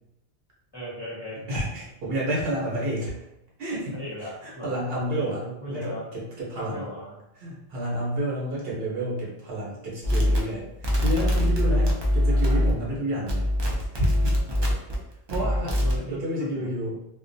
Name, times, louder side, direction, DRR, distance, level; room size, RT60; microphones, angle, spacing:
voice 1, 0.7-1.4 3.9-6.0 6.5-7.2 10.2-10.8 11.6-11.8 12.3-12.7 14.5-14.8 15.4-16.7, equal, 25° left, -8 dB, 0.7 m, -38 dB
voice 2, 1.4-3.1 3.6-4.0 4.4-5.4 5.7-6.9 7.4-13.4 13.7-14.3 15.3-15.7 16.1-17.0, right 1 dB, 70° right, -5 dB, 1.0 m, -30 dB
sound 1, 10.0-13.0 13.3-14.9 15.3-16.0, left 1 dB, 45° right, 0.3 m, -23 dB
2.4 x 2.2 x 2.6 m, 0.85 s
omnidirectional pair, 1.0 m